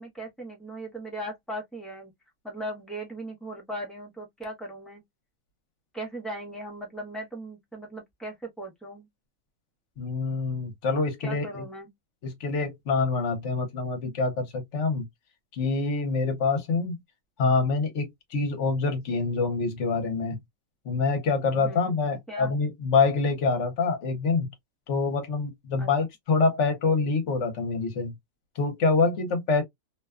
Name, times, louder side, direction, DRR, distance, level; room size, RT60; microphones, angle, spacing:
voice 1, 0.0-2.1 2.4-5.0 5.9-9.1 11.2-11.9 21.5-22.0 22.3-22.5 25.8-25.9, right 1 dB, ahead, 0.5 m, -38 dB
voice 2, 10.0-11.6 12.2-15.1 15.5-17.0 17.4-20.4 20.9-24.5 24.9-28.1 28.6-29.6, left 4 dB, 60° left, 1.0 m, -26 dB
2.7 x 2.2 x 2.3 m
omnidirectional pair, 1.5 m